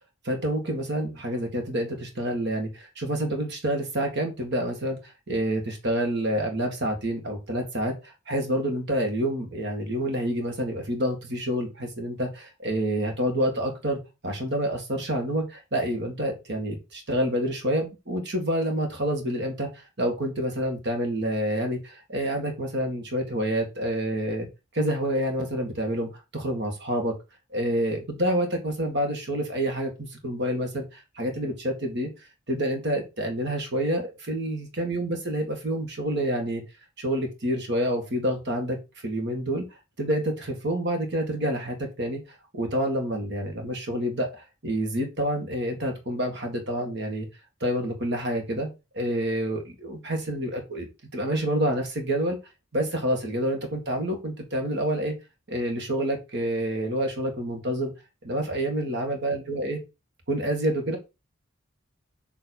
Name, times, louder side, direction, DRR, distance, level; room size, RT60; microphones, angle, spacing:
voice 1, 0.2-24.5 24.7-27.1 27.5-32.1 32.5-36.6 37.0-38.8 39.0-39.7 40.0-42.2 42.5-47.3 47.6-48.7 48.9-52.4 52.7-55.1 55.5-57.9 58.2-59.8 60.3-61.0, right 1 dB, 55° right, 4 dB, 1.9 m, -28 dB
6.9 x 3.3 x 4.3 m, 0.26 s
head